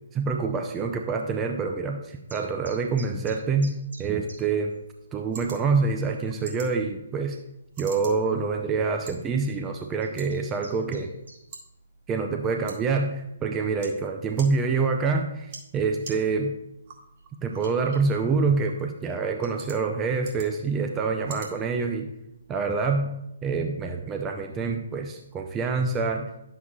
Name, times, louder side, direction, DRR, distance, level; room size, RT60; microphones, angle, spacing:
voice 1, 0.1-4.7 5.1-7.4 7.8-11.1 12.1-16.6 17.4-22.1 22.5-26.3, right 4 dB, 15° right, 4 dB, 0.5 m, -26 dB
sound 1, 2.3-4.4 4.7-4.8 5.3-5.4 5.7-6.1 6.7-6.8 8.1-8.2 9.0-9.2 9.8-11.4, right 2 dB, 80° right, 3.3 m, -47 dB
sound 2, 4.4-22.4, right 4 dB, 45° right, 2.1 m, -49 dB
10.5 x 7.4 x 2.4 m, 0.85 s
figure-of-eight pair, 130°, 0 cm